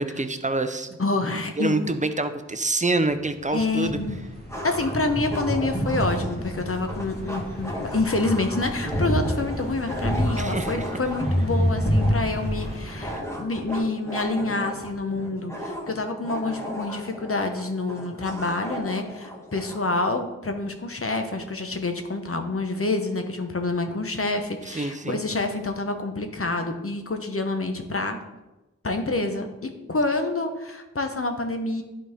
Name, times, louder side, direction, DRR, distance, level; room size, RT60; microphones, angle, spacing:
voice 1, 0.0-1.0 1.6-4.0 10.4-10.8 24.7-25.2, right 2 dB, 25° right, 9 dB, 0.6 m, -26 dB
voice 2, 1.0-1.8 3.5-4.2 4.6-13.1 13.4-28.2 28.8-31.8, left 2 dB, 50° left, 6 dB, 0.9 m, -27 dB
sound 1, 3.1-13.1, equal, 35° left, 2.3 m, -28 dB
sound 2, 3.5-3.6 4.5-19.9, equal, 10° left, 1.3 m, -36 dB
11.0 x 4.2 x 3.6 m, 1.0 s
wide cardioid pair, 50°, 29 cm